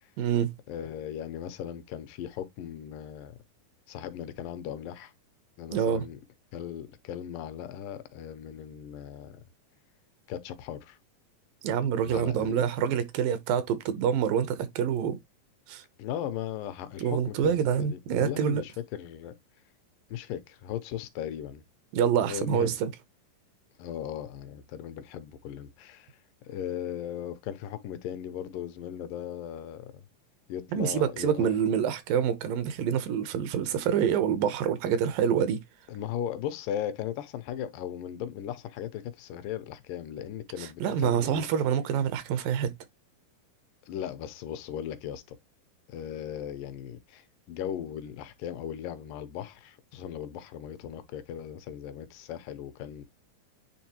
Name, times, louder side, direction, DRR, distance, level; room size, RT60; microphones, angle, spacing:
voice 1, 0.2-0.5 5.7-6.0 11.6-15.2 15.7-15.8 17.0-18.6 21.9-22.9 30.7-35.6 40.6-42.7, right 8 dB, 80° right, 2.6 m, -26 dB
voice 2, 0.7-3.3 3.9-5.1 5.6-6.2 6.5-9.4 10.3-11.0 12.0-12.7 16.0-19.3 20.1-21.6 22.2-22.8 23.8-26.1 26.5-30.0 30.5-31.5 35.9-41.5 43.9-45.4 45.9-53.0, left 10 dB, 85° left, 2.4 m, -37 dB
9.4 x 3.6 x 2.9 m
omnidirectional pair, 3.9 m